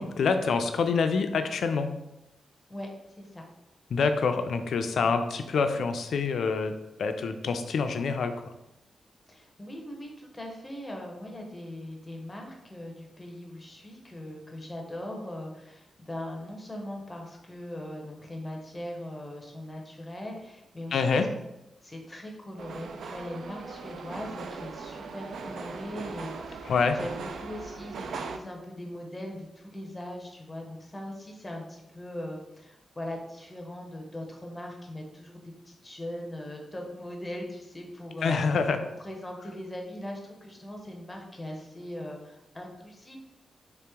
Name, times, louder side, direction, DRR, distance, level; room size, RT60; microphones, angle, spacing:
voice 1, 0.0-1.9 3.9-6.7 7.0-8.3 20.9-21.3 26.7-27.0 38.2-38.8, left 5 dB, 70° left, 7 dB, 0.3 m, -26 dB
voice 2, 9.3-21.3 21.8-35.4 35.6-38.6 39.0-43.2, left 1 dB, 10° left, 1 dB, 0.6 m, -40 dB
sound 1, 22.6-28.4, right 4 dB, 70° right, 0.3 m, -39 dB
3.2 x 2.9 x 3.5 m, 0.89 s
wide cardioid pair, 170°, 0 cm